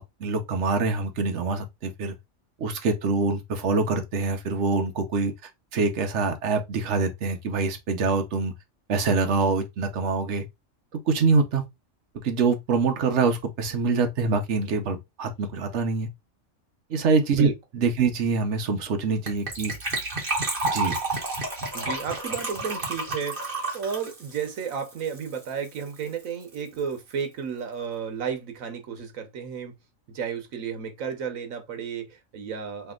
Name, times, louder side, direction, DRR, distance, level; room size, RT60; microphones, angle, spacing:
voice 1, 0.0-2.1 2.6-5.3 5.7-8.5 8.9-10.4 10.9-11.6 12.2-16.1 16.9-19.7 20.7-21.0, right 4 dB, 65° right, 1.1 m, -25 dB
Gurgling / Trickle dribble / Fill (with liquid), 19.3-25.5 25.8-25.9 26.0-26.2 26.5-26.6, right 2 dB, 40° right, 1.5 m, -30 dB
voice 2, 21.7-29.7 30.1-32.9, right 7 dB, 85° right, 1.3 m, -33 dB
3.4 x 2.9 x 3.6 m
omnidirectional pair, 1.4 m